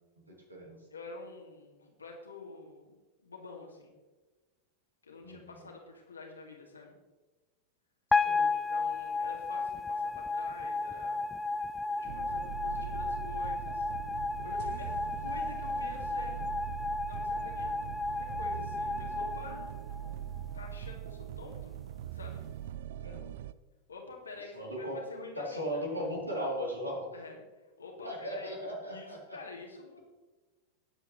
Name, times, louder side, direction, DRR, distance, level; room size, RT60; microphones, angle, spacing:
voice 1, 0.3-0.8 5.2-5.5 8.2-8.5 23.0-23.3 24.5-25.0 25.4-27.2 28.0-29.4, equal, 85° right, -2 dB, 3.3 m, -37 dB
voice 2, 0.9-3.0 3.2-3.9 5.0-7.0 8.5-11.6 11.9-13.9 14.4-16.4 17.1-17.9 18.1-19.8 20.5-21.8 22.1-22.5 23.9-25.9 27.1-28.6 28.9-30.0, left 3 dB, 75° left, 0 dB, 2.4 m, -48 dB
sound 1, 8.1-20.4, left 3 dB, 10° left, 0.4 m, -33 dB
sound 2, 12.1-23.5, right 10 dB, 55° right, 0.4 m, -42 dB
19.5 x 8.2 x 3.3 m, 1.2 s
figure-of-eight pair, 90°, 0 cm